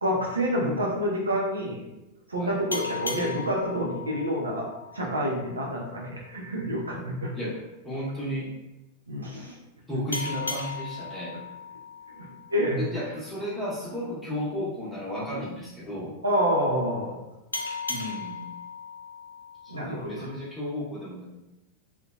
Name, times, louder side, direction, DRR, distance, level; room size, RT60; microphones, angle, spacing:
voice 1, 0.0-1.8 2.3-4.7 4.9-7.3 9.1-9.5 12.5-12.8 16.2-17.2 19.7-20.3, equal, 75° right, -2 dB, 0.5 m, -28 dB
sound 1, 2.7-5.9 10.1-13.3 17.5-20.5, left 3 dB, 80° left, 0.3 m, -37 dB
voice 2, 7.8-8.5 9.3-9.4 9.9-11.3 12.8-16.1 17.9-18.4 19.6-21.2, equal, ahead, -8 dB, 0.9 m, -33 dB
2.7 x 2.1 x 2.3 m, 0.96 s
figure-of-eight pair, 90°, 0 cm